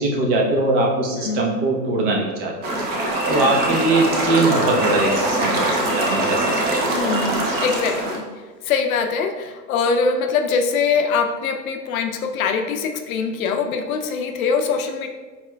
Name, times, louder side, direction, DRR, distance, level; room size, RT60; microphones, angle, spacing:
voice 1, 0.0-2.8 3.3-5.7 6.0-6.8, right 2 dB, 45° right, 0 dB, 1.0 m, -21 dB
sound 1, 2.6-8.2, right 1 dB, 20° right, 0.5 m, -23 dB
sound 2, 3.0-7.9, equal, ahead, 0.9 m, -32 dB
voice 2, 6.9-8.2 8.6-15.1, left 5 dB, 60° left, 5 dB, 0.5 m, -23 dB
4.4 x 4.2 x 2.2 m, 1.4 s
hypercardioid pair, 110°, 49 cm